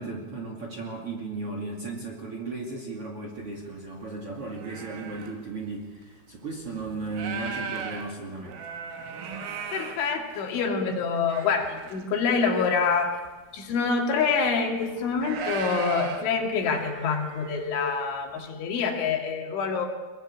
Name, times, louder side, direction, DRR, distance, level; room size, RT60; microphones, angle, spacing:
voice 1, 0.0-8.6, right 3 dB, 35° right, 1 dB, 2.5 m, -35 dB
sound 1, 3.4-3.5 4.0-5.3 6.0-6.1 6.6-10.6 11.1-12.0 12.3-12.4 12.9-13.0 13.3-13.9 14.6-17.7, right 6 dB, 80° right, 5.0 m, -37 dB
voice 2, 9.7-13.2 13.5-19.9, left 5 dB, 70° left, 2 dB, 4.8 m, -26 dB
23.0 x 21.5 x 8.6 m, 1.4 s
omnidirectional pair, 5.7 m